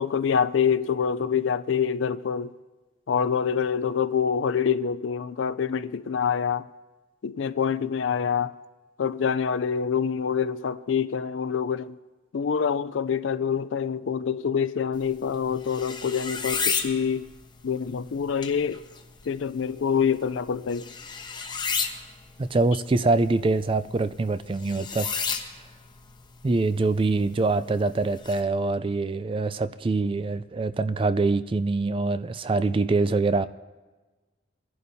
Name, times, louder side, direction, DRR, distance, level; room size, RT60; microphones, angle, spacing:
voice 1, 0.0-2.5 3.1-6.7 7.2-8.5 9.0-12.0 12.3-17.3 17.6-18.8 19.3-20.9, left 7 dB, 85° left, 0.4 m, -26 dB
sound 1, 14.9-28.4, left 5 dB, 25° left, 1.0 m, -35 dB
voice 2, 22.4-25.1 26.4-33.5, right 3 dB, 30° right, 0.3 m, -24 dB
24.0 x 11.0 x 2.7 m
head